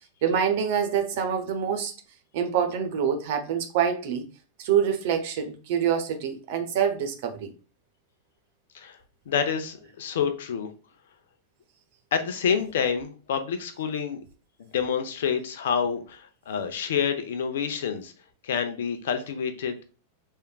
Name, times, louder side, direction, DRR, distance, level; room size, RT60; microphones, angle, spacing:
voice 1, 0.2-1.9 2.3-4.2 4.6-7.5, right 8 dB, 50° right, 0.9 m, -26 dB
voice 2, 9.3-10.7 12.1-14.2 14.6-18.1 18.4-19.8, left 7 dB, 60° left, 0.7 m, -28 dB
5.5 x 3.5 x 2.3 m
figure-of-eight pair, 90°, 0 cm